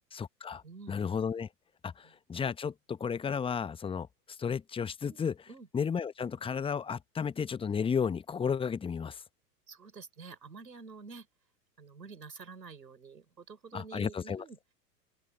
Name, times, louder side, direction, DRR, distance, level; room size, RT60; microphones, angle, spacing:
voice 1, 0.1-0.6 0.9-1.5 1.8-4.1 4.4-5.3 5.7-9.2 13.7-14.4, left 6 dB, 10° left, 1.0 m, -33 dB
voice 2, 0.6-1.0 2.0-2.1 5.0-5.7 9.7-11.3 11.8-14.6, right 5 dB, 80° right, 5.0 m, -49 dB
open air
figure-of-eight pair, 95°, 49 cm